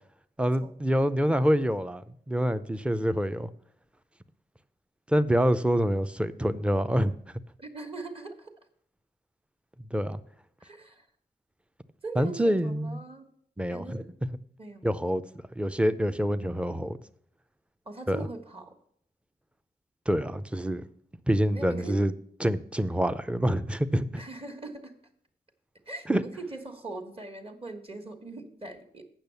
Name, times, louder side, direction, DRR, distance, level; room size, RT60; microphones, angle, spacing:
voice 1, 0.4-3.5 5.1-7.1 9.9-10.2 12.2-13.0 13.6-14.3 14.8-15.2 15.6-17.0 18.1-18.2 20.1-20.8 21.3-22.1 22.4-24.2 26.1-26.2, equal, 5° right, 12 dB, 0.5 m, -26 dB
voice 2, 7.6-8.5 10.6-11.1 12.0-13.3 13.7-14.0 14.6-14.9 17.8-18.8 21.5-22.0 24.2-24.9 25.8-29.0, right 3 dB, 30° right, 5 dB, 1.4 m, -41 dB
8.7 x 6.4 x 6.8 m, 0.64 s
wide cardioid pair, 105°, 18 cm